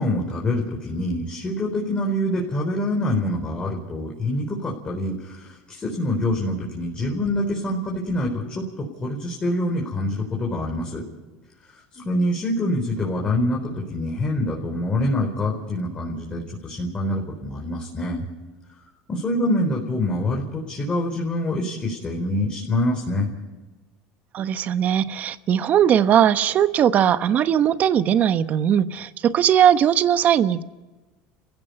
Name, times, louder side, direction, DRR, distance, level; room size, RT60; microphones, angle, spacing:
voice 1, 0.0-11.0 11.9-18.2 19.1-23.3, left 1 dB, 25° left, -1 dB, 4.4 m, -25 dB
voice 2, 24.3-30.6, right 9 dB, 45° right, 12 dB, 1.1 m, -19 dB
30.0 x 16.0 x 5.5 m, 1.2 s
supercardioid pair, 115°, 4 cm